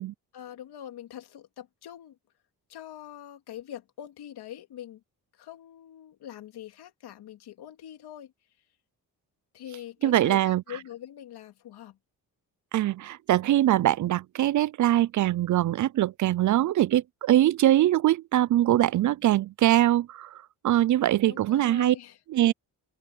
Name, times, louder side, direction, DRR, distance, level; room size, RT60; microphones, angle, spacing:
voice 1, 0.3-2.2 2.7-5.0 5.3-8.3 9.5-12.0 21.2-22.2, left 11 dB, 85° left, 2.8 m, -43 dB
voice 2, 10.0-10.6 12.7-20.3 20.6-22.0 22.3-22.5, right 13 dB, 55° right, 0.4 m, -22 dB
open air
cardioid pair, 100°, 38 cm